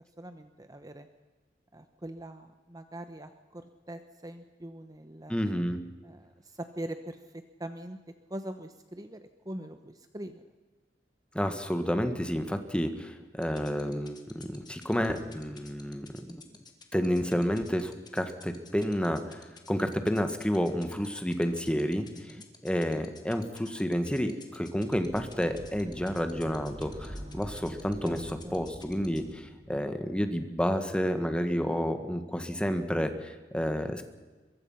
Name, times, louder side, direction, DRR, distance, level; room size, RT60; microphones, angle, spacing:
voice 1, 0.2-1.1 1.7-5.3 6.0-7.2 7.6-8.0 8.3-10.4 22.1-22.4 28.0-28.2 28.4-28.6, right 1 dB, 20° right, 8 dB, 1.0 m, -42 dB
voice 2, 5.3-5.8 11.3-16.4 16.9-19.4 19.7-22.3 22.6-28.2 28.5-34.0, equal, 5° left, 7 dB, 1.8 m, -30 dB
sound 1, 13.4-29.3, left 5 dB, 25° left, 2.6 m, -51 dB
sound 2, 24.8-30.1, equal, 40° right, 5.1 m, -45 dB
23.5 x 22.5 x 5.8 m, 1.3 s
head